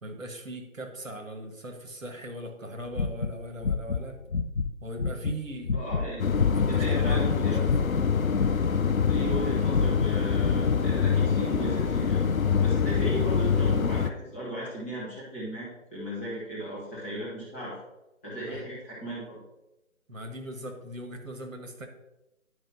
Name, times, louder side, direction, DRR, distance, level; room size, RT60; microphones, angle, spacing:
voice 1, 0.0-4.2 4.8-6.1 6.5-8.0 18.5-18.7 20.1-21.9, right 1 dB, 70° right, 4 dB, 1.7 m, -40 dB
sound 1, 2.9-4.0 4.3-4.7 5.0-7.4 7.7-9.4 9.7-10.8, left 5 dB, 50° left, 0.5 m, -28 dB
voice 2, 5.7-6.2 6.6-7.6 9.0-12.2 12.6-17.7 18.2-19.4, right 1 dB, 10° left, -7 dB, 1.1 m, -36 dB
sound 2, 6.2-14.1, left 6 dB, 80° left, 0.8 m, -25 dB
10.5 x 4.9 x 4.1 m, 0.96 s
figure-of-eight pair, 150°, 41 cm